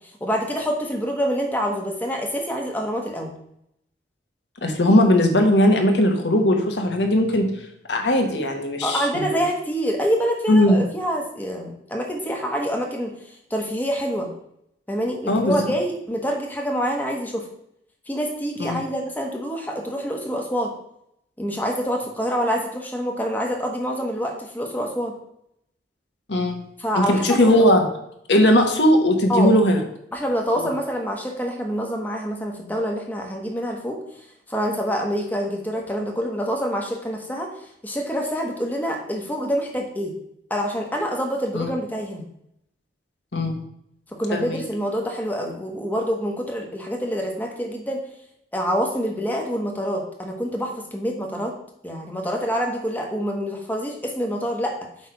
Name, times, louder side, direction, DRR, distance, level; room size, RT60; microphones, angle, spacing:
voice 1, 0.2-3.3 8.8-13.1 13.5-14.3 14.9-17.5 18.1-20.8 21.4-25.1 26.8-27.6 29.3-29.5 30.1-34.0 34.5-37.5 37.8-40.1 40.5-42.2 44.1-48.0 48.5-51.6 51.8-54.8, equal, 10° left, 1 dB, 1.1 m, -26 dB
voice 2, 4.6-7.5 7.9-9.4 10.5-10.8 15.3-15.7 18.6-18.8 26.3-26.6 26.9-27.8 28.3-29.8 30.6-30.7 41.5-41.7 43.3-43.6 44.3-44.6, left 1 dB, 80° left, 3 dB, 1.3 m, -18 dB
8.1 x 3.4 x 5.7 m, 0.75 s
head